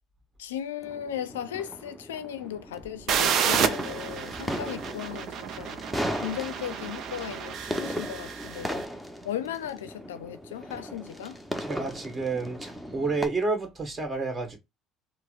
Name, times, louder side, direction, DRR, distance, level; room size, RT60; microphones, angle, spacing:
voice 1, 0.4-5.8 6.2-8.9 9.2-11.4, left 10 dB, 90° left, 0.4 m, -36 dB
sound 1, 0.8-13.3, equal, 5° right, 0.8 m, -37 dB
sound 2, 3.1-8.7, right 8 dB, 60° right, 0.5 m, -30 dB
voice 2, 11.6-14.6, right 3 dB, 30° right, 1.4 m, -30 dB
4.5 x 2.0 x 2.5 m
hypercardioid pair, 65°, 0 cm